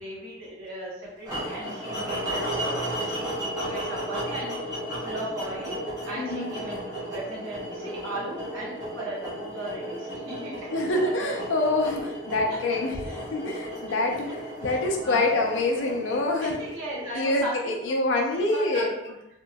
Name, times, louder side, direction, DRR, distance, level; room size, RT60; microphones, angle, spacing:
voice 1, 0.0-3.3 3.6-10.5 13.1-13.2 14.7-15.3 16.4-18.0 18.5-18.9, right 1 dB, 75° right, -6 dB, 0.9 m, -37 dB
sound 1, 1.2-17.4, equal, 20° right, 0.9 m, -34 dB
voice 2, 6.2-6.5 10.7-16.6 17.1-18.9, left 2 dB, 65° left, 2 dB, 0.4 m, -26 dB
2.9 x 2.5 x 2.2 m, 0.87 s
head